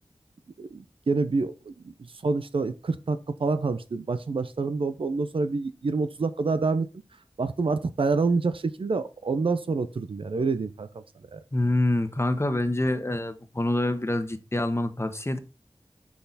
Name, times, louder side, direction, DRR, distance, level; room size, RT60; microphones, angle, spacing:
voice 1, 0.6-6.9 7.4-11.0 11.3-11.4, right 4 dB, 75° right, 0.6 m, -27 dB
voice 2, 11.5-15.4, left 1 dB, 30° left, 1.1 m, -26 dB
6.4 x 5.8 x 4.1 m
wide cardioid pair, 45°, 9 cm